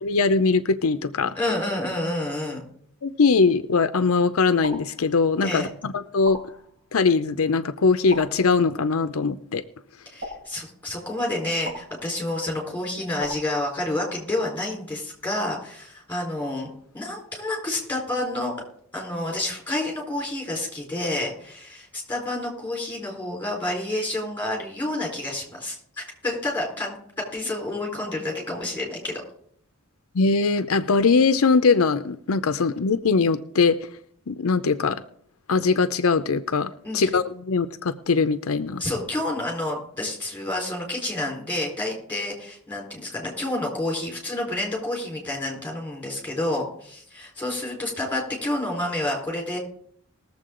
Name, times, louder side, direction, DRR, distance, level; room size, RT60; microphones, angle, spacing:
voice 1, 0.0-1.3 3.0-6.4 6.9-9.6 30.1-33.8 34.3-35.0 35.5-38.8, left 4 dB, 80° left, 10 dB, 0.6 m, -21 dB
voice 2, 1.4-2.6 5.4-5.7 10.1-16.7 16.9-18.5 18.9-27.0 27.3-29.2 36.8-37.0 38.8-49.6, left 1 dB, 10° left, -1 dB, 4.1 m, -29 dB
sound 1, 4.6-5.5 6.2-7.1 8.1-8.9 10.2-11.1 11.7-12.5 13.2-14.2, equal, 55° right, 5.3 m, -40 dB
20.5 x 7.3 x 3.8 m, 0.62 s
head